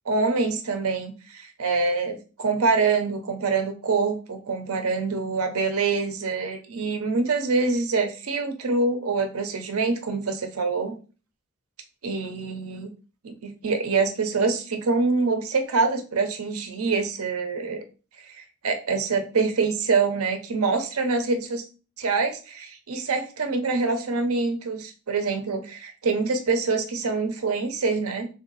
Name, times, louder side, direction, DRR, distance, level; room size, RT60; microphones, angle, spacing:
voice 1, 0.1-11.0 12.0-12.9 13.2-17.8 18.4-21.6 22.0-28.3, right 4 dB, 80° right, 6 dB, 0.7 m, -25 dB
3.3 x 2.7 x 4.0 m, 0.35 s
head